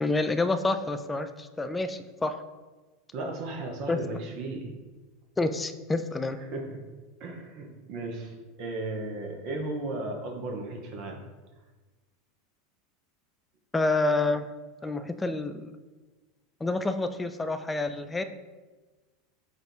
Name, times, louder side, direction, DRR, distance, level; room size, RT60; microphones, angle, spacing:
voice 1, 0.0-2.4 3.9-4.0 5.4-6.4 13.7-14.5 14.8-15.8 16.6-18.2, left 2 dB, 15° left, 10 dB, 0.4 m, -28 dB
voice 2, 3.1-4.7 6.4-6.7 7.2-11.2, right 2 dB, 50° right, 1 dB, 0.8 m, -35 dB
4.7 x 2.5 x 4.5 m, 1.3 s
figure-of-eight pair, 85°, 0 cm